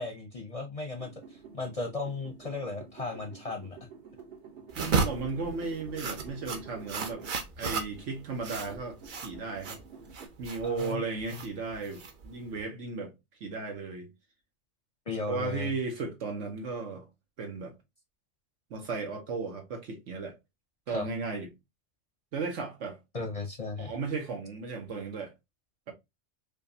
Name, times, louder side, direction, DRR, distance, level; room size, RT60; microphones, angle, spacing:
voice 1, 0.0-3.8 10.6-11.0 11.3-11.4 15.1-15.7 20.9-21.1 23.1-23.9, left 3 dB, 40° left, 0.6 m, -36 dB
sound 1, 0.9-7.4 7.8-10.3, right 6 dB, 70° right, 1.6 m, -50 dB
sound 2, 4.7-12.6, right 4 dB, 50° right, 0.7 m, -34 dB
voice 2, 4.7-7.2 7.6-9.0 9.2-9.8 10.4-13.1 13.4-14.1 15.3-17.1 17.4-17.7 18.7-20.4 20.9-21.5 22.3-23.0 23.8-25.3, right 4 dB, 85° right, 1.3 m, -35 dB
5.0 x 2.3 x 2.6 m
omnidirectional pair, 1.2 m